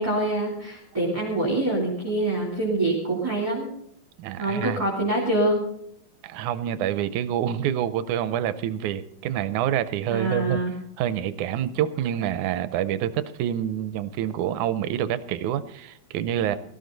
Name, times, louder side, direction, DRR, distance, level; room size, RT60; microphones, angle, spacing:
voice 1, 0.0-3.7 4.4-5.6 10.1-10.7 16.5-16.6, right 2 dB, 10° right, -3 dB, 2.6 m, -25 dB
voice 2, 4.2-4.8 6.2-10.6 11.0-16.6, right 10 dB, 80° right, 13 dB, 2.0 m, -27 dB
18.0 x 13.5 x 3.9 m, 0.72 s
omnidirectional pair, 3.6 m